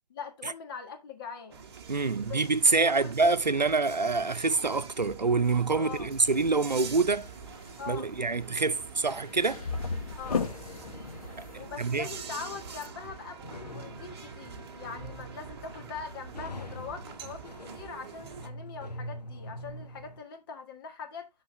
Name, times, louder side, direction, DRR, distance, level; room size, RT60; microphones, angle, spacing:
voice 1, 0.1-1.6 2.1-2.4 2.7-3.1 5.8-6.1 7.8-8.1 10.2-10.5 11.6-21.3, left 6 dB, 35° left, 1.7 m, -42 dB
sound 1, 1.5-18.5, right 6 dB, 35° right, 1.1 m, -45 dB
voice 2, 1.9-7.3 7.9-9.6 11.4-11.5 11.8-12.1, right 4 dB, 85° right, 0.7 m, -26 dB
sound 2, 6.7-12.9, left 5 dB, 55° left, 1.1 m, -38 dB
sound 3, 10.2-20.2, left 1 dB, 75° left, 1.5 m, -45 dB
12.5 x 4.1 x 2.9 m
figure-of-eight pair, 135°, 21 cm